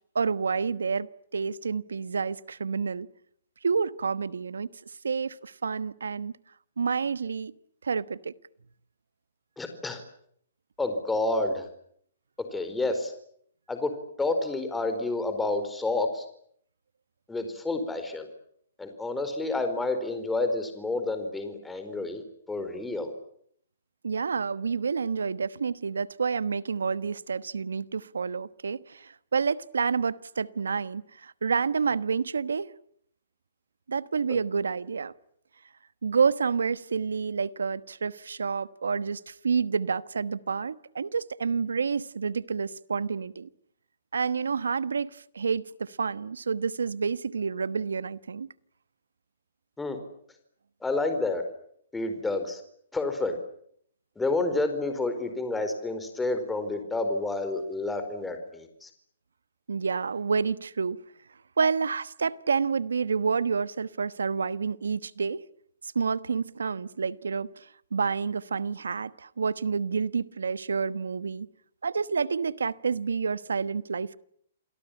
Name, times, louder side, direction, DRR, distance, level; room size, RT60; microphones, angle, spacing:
voice 1, 0.1-3.1 3.6-4.7 5.0-6.3 6.8-7.5 7.8-8.3 24.0-32.7 33.9-35.1 36.0-43.5 44.1-48.5 59.7-61.0 61.6-65.4 65.8-71.5 71.8-74.2, right 5 dB, 90° right, 1.1 m, -29 dB
voice 2, 9.6-10.0 10.8-11.7 12.5-13.1 13.7-13.9 14.2-16.2 17.3-18.3 18.8-22.2 22.5-23.1 34.3-34.4 49.8-50.0 50.8-51.4 51.9-52.6 52.9-53.4 54.2-58.9, left 2 dB, 10° left, 4.5 m, -29 dB
28.5 x 18.5 x 10.0 m
hypercardioid pair, 135°, 0 cm